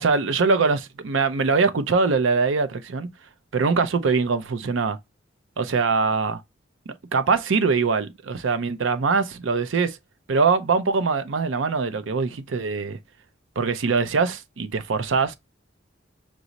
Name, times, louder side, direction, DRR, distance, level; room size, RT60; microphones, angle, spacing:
voice 1, 0.0-3.1 3.5-5.0 5.6-6.4 6.9-10.0 10.3-13.0 13.6-15.3, right 4 dB, 80° right, 0.5 m, -22 dB
6.0 x 2.0 x 3.9 m
head